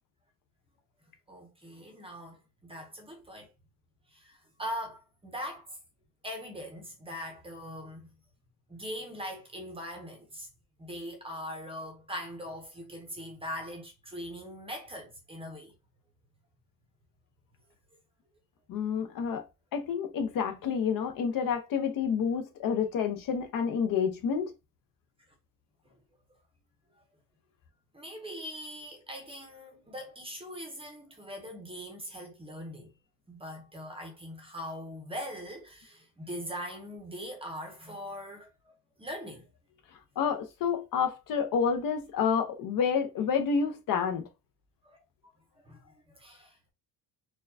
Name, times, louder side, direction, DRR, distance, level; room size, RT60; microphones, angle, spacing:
voice 1, 1.3-3.5 4.1-5.8 6.2-8.1 8.7-10.5 10.8-15.7 27.9-32.9 33.3-39.5 44.8-45.0 45.6-45.8 46.1-46.7, equal, 15° right, 0.6 m, -41 dB
voice 2, 18.7-19.4 19.7-24.5 40.2-44.3, left 6 dB, 55° left, 0.7 m, -29 dB
4.3 x 2.3 x 2.6 m
cardioid pair, 165°, 39 cm